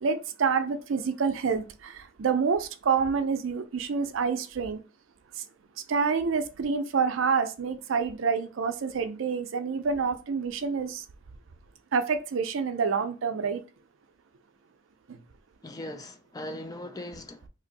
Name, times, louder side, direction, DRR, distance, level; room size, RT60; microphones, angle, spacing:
voice 1, 0.0-4.8 5.9-11.0 11.9-13.6 15.1-15.2, right 5 dB, 70° right, 0.5 m, -27 dB
voice 2, 15.6-17.5, left 1 dB, 20° left, 0.4 m, -39 dB
2.7 x 2.6 x 4.0 m
head